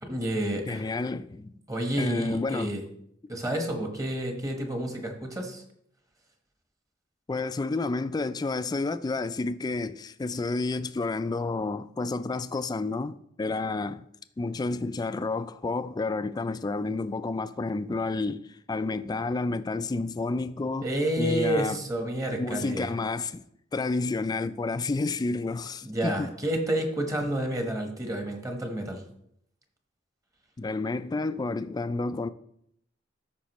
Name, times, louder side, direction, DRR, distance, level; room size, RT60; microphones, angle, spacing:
voice 1, 0.0-0.9 1.7-2.8 3.3-5.6 20.8-22.9 25.8-29.0, right 1 dB, 20° right, 1.1 m, -29 dB
voice 2, 0.7-1.5 2.0-2.7 7.3-14.1 14.4-20.9 21.2-21.8 22.3-23.4 23.7-26.3 30.6-32.3, left 3 dB, 20° left, 0.3 m, -30 dB
13.0 x 5.2 x 3.0 m
head